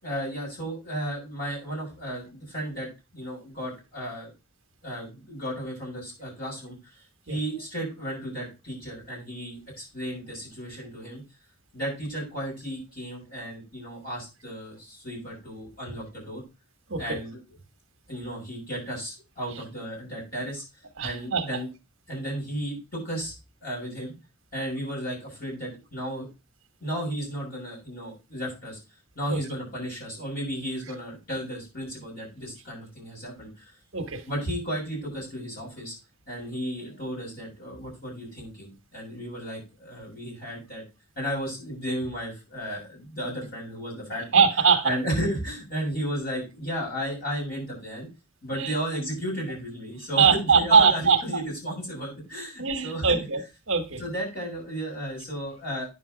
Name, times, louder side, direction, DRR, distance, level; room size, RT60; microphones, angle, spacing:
voice 1, 0.0-4.3 4.8-6.8 7.3-11.2 11.7-16.4 17.0-17.4 18.1-20.6 21.0-21.7 22.1-23.3 23.6-24.1 24.5-26.3 26.8-28.8 29.1-33.7 34.3-35.9 36.3-40.8 41.1-44.4 44.8-48.1 48.4-53.2 54.0-55.9, equal, 40° left, 6.6 m, -34 dB
voice 2, 21.0-21.5 29.3-29.4 33.9-34.2 44.3-44.9 48.5-48.7 50.1-51.2 52.6-53.4 53.7-54.0, right 5 dB, 60° right, 1.2 m, -21 dB
9.3 x 6.8 x 3.9 m
head